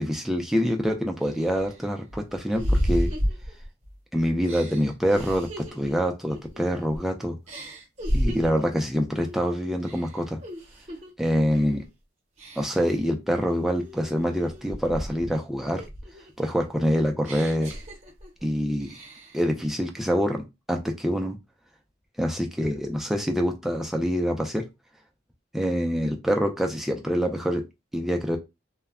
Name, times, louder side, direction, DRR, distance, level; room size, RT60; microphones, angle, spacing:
voice 1, 0.0-3.1 4.1-7.4 8.1-10.4 11.2-11.9 12.6-15.8 16.4-17.7 18.4-19.0 19.3-21.4 22.2-24.6 25.5-27.6 27.9-28.4, equal, ahead, 2 dB, 0.4 m, -25 dB
sound 1, 0.6-0.7 1.2-4.0 4.4-7.1 7.5-8.7 9.2-9.5 9.8-11.1 11.5-11.9 12.4-13.0 13.5-15.4 15.8-18.5 18.8-19.5, equal, 35° right, 0.8 m, -32 dB
2.1 x 2.1 x 3.5 m, 0.23 s
head